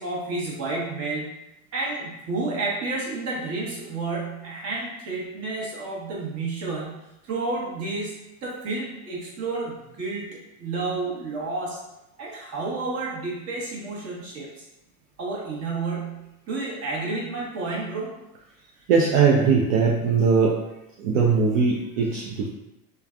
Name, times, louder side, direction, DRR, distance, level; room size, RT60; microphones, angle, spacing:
voice 1, 0.0-1.4 1.7-8.2 8.4-11.8 12.2-14.6 15.2-18.1, right 3 dB, 35° right, -4 dB, 1.0 m, -30 dB
voice 2, 18.9-20.5 21.0-22.5, right 5 dB, 60° right, -2 dB, 0.5 m, -20 dB
3.2 x 2.2 x 2.4 m, 0.93 s
hypercardioid pair, 90°, 44 cm